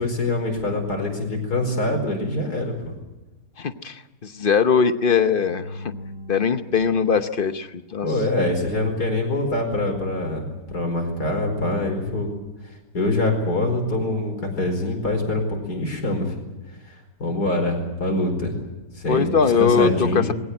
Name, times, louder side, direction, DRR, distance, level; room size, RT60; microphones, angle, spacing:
voice 1, 0.0-3.0 8.0-12.3 12.6-16.4 16.8-18.6 18.9-20.3, left 2 dB, 60° left, 3 dB, 5.2 m, -24 dB
voice 2, 3.6-5.9 6.3-8.1 19.1-20.3, left 6 dB, 45° left, 10 dB, 0.8 m, -21 dB
Magical Glowing, 5.1-8.3, equal, 85° right, 8.0 m, -41 dB
21.0 x 17.5 x 9.4 m, 1.0 s
omnidirectional pair, 1.9 m